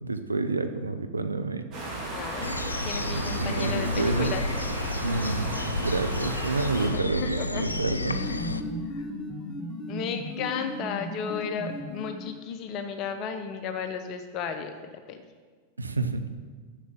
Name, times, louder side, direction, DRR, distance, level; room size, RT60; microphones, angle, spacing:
voice 1, 0.0-1.6 3.1-4.3 5.0-5.6 5.8-8.2 15.8-16.2, right 3 dB, 80° right, 8 dB, 0.6 m, -29 dB
sound 1, 1.7-6.9, right 1 dB, 35° right, 3.0 m, -34 dB
voice 2, 2.1-2.5 2.8-4.4 6.8-7.6 8.1-8.5 8.9-9.1 9.9-15.2, left 6 dB, 40° left, 7 dB, 0.8 m, -34 dB
sound 2, 2.4-8.6, left 2 dB, 80° left, 0.4 m, -32 dB
sound 3, 7.6-12.5, left 1 dB, 15° left, 1.3 m, -36 dB
7.3 x 6.6 x 7.3 m, 1.5 s
figure-of-eight pair, 90°, 0 cm